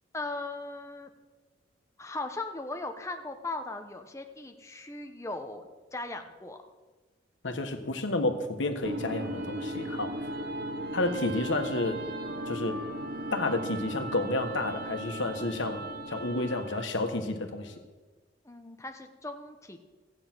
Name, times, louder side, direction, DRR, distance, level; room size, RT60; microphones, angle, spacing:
voice 1, 0.1-1.1 2.0-6.6 18.4-19.8, left 2 dB, 15° left, 5 dB, 0.9 m, -38 dB
voice 2, 7.4-10.1 10.9-12.0 12.5-12.8 13.3-17.7, left 2 dB, 80° left, 6 dB, 1.4 m, -30 dB
sound 1, 8.8-17.0, right 1 dB, 55° right, 1.1 m, -37 dB
14.5 x 8.8 x 6.1 m, 1.3 s
head